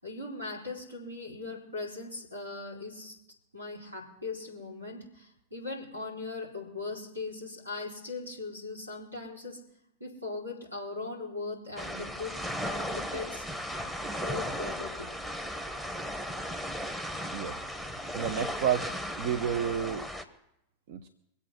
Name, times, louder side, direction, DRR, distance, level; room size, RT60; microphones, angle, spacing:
voice 1, 0.0-3.1 3.5-9.6 10.0-13.5 14.1-15.1, left 3 dB, 85° right, -3 dB, 4.1 m, -39 dB
sound 1, 11.8-20.2, equal, 5° right, 1.2 m, -36 dB
voice 2, 18.1-18.9 19.2-20.1 20.9-21.1, right 8 dB, 50° right, 8 dB, 0.8 m, -30 dB
24.5 x 8.3 x 5.7 m, 0.82 s
figure-of-eight pair, 90°, 0 cm